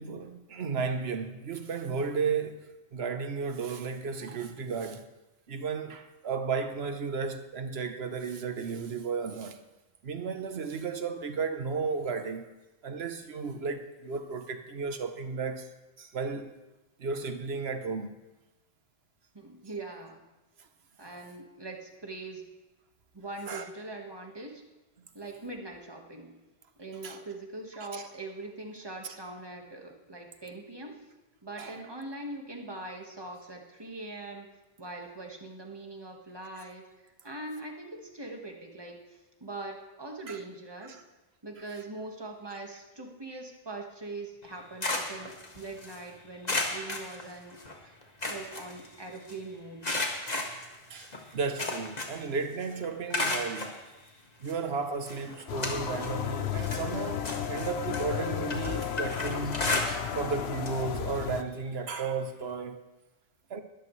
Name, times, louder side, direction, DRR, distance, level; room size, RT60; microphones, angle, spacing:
voice 1, 0.0-5.1 5.5-9.6 10.0-12.5 12.8-15.7 16.0-16.5 17.0-18.1 23.5-23.7 27.0-27.2 27.9-28.1 31.6-31.8 40.3-40.4 40.8-41.0 42.5-42.6 50.9-53.8 54.4-62.8 63.5-63.6, right 5 dB, 70° right, 1.2 m, -34 dB
voice 2, 19.3-20.2 21.0-22.4 23.1-24.6 25.1-26.4 26.8-31.0 31.4-34.5 34.8-41.0 41.4-47.6 48.3-49.9, right 2 dB, 25° right, 1.7 m, -42 dB
sound 1, 44.4-46.0 46.4-47.7 48.0-49.3 49.8-52.3 52.6-53.8 54.5-54.6 55.1-56.2 56.5-60.3 60.6-60.8 61.2-61.3 62.5-62.6, left 2 dB, 40° left, 1.8 m, -34 dB
sound 2, 55.5-61.4, left 9 dB, 75° left, 1.0 m, -33 dB
21.0 x 13.0 x 3.2 m
omnidirectional pair, 1.1 m